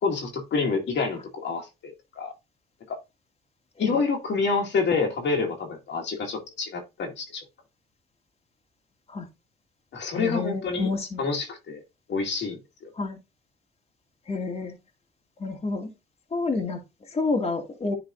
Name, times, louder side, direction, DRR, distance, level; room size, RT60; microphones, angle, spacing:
voice 1, 0.0-2.3 2.9-3.0 3.8-7.4 9.9-10.9 11.2-11.8 12.1-12.9, left 4 dB, 65° left, 2.1 m, -28 dB
voice 2, 10.1-11.3 13.0-13.2 14.3-14.7 15.4-15.9 16.3-17.9, left 3 dB, 30° left, 2.0 m, -29 dB
10.5 x 3.9 x 2.5 m
cardioid pair, 90°, 20 cm